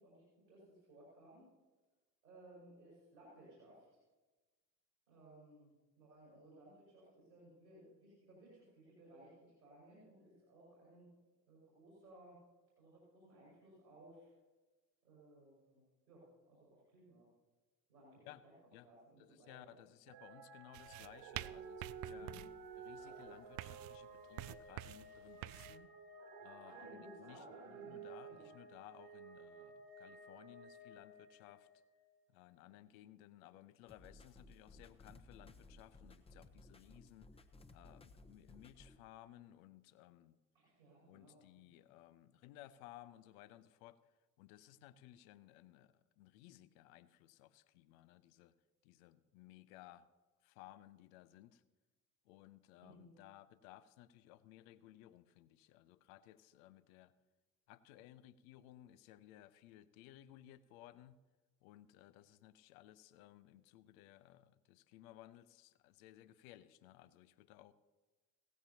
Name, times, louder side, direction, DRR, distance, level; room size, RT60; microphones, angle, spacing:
voice 1, 0.0-1.4 2.2-4.0 5.1-5.7 6.0-11.1 11.5-12.4 12.8-14.3 15.0-15.8 16.1-17.3 17.9-18.5 18.8-19.7 22.1-22.4 26.6-28.5 40.5-41.4 52.8-53.1, right 1 dB, 85° right, -6 dB, 5.4 m, -60 dB
voice 2, 19.2-22.3 22.8-25.9 26.4-31.7 32.3-37.3 37.7-40.4 41.1-48.5 48.8-50.1 50.4-51.6 52.2-57.1 57.7-61.2 61.6-67.7, left 14 dB, 55° left, 16 dB, 0.8 m, -59 dB
sound 1, 20.1-32.0 32.6-32.7, right 4 dB, 65° right, 2.7 m, -54 dB
sound 2, 20.7-25.8, right 17 dB, 45° right, 0.4 m, -49 dB
sound 3, 33.9-39.0, left 2 dB, 10° left, 1.0 m, -60 dB
17.0 x 14.5 x 2.8 m, 1.2 s
figure-of-eight pair, 55°, 49 cm